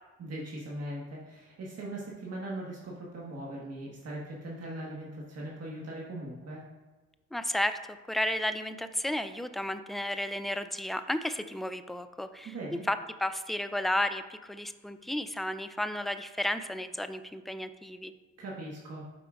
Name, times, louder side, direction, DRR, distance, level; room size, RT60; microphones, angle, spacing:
voice 1, 0.2-6.6 12.4-12.8 18.4-19.0, right 1 dB, 55° right, -5 dB, 1.5 m, -40 dB
voice 2, 7.3-18.1, left 1 dB, ahead, 10 dB, 0.3 m, -33 dB
11.5 x 4.9 x 2.5 m, 1.2 s
cardioid pair, 90°, 30 cm